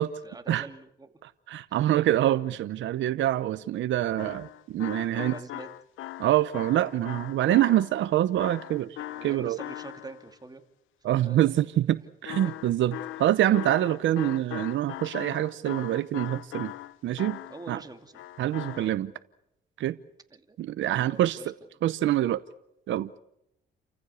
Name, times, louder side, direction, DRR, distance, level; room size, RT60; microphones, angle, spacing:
voice 1, 0.0-1.1 1.7-1.8 5.0-5.7 9.0-10.6 11.1-11.6 12.4-12.5 17.5-18.2 18.6-19.0 20.3-20.6 20.8-21.5, right 3 dB, 20° right, 2.5 m, -45 dB
voice 2, 1.2-5.3 6.2-9.6 11.0-16.7 17.0-17.4 17.7-17.8 18.4-19.1 19.8-20.0 20.6-21.5 21.8-22.4 22.9-23.1, right 13 dB, 75° right, 0.8 m, -25 dB
sound 1, 4.2-10.3 12.3-17.8 18.1-18.9, left 15 dB, 80° left, 0.8 m, -40 dB
29.0 x 15.0 x 8.3 m
cardioid pair, 90°, 20 cm